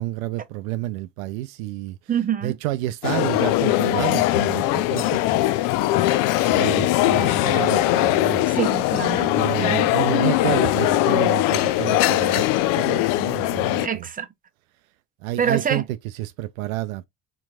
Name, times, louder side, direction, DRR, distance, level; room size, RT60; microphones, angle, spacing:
voice 1, 0.0-2.0 2.4-5.4 6.3-8.5 9.3-12.5 12.8-14.1 15.2-17.1, right 15 dB, 65° right, 0.5 m, -29 dB
voice 2, 2.1-2.5 8.6-9.3 9.6-9.8 13.8-14.3 15.4-15.8, right 8 dB, 20° right, 1.0 m, -25 dB
sound 1, 3.0-13.9, left 15 dB, 50° left, 0.5 m, -21 dB
4.3 x 3.9 x 2.4 m
figure-of-eight pair, 60°, 44 cm